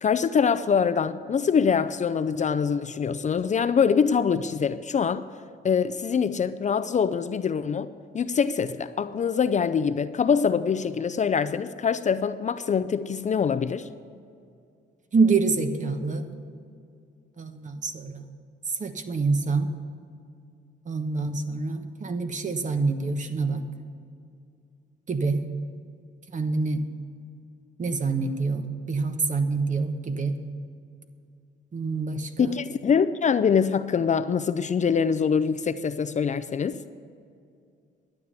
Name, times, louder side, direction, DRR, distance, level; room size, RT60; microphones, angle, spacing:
voice 1, 0.0-5.2 5.6-13.9 32.4-36.8, left 6 dB, 35° left, 11 dB, 0.5 m, -24 dB
voice 2, 15.1-16.3 17.4-18.2 18.8-19.7 20.9-23.7 25.1-25.4 26.3-26.8 27.8-30.4 31.7-32.5, right 4 dB, 40° right, 7 dB, 1.2 m, -26 dB
12.0 x 9.2 x 6.7 m, 2.4 s
cardioid pair, 90°, 20 cm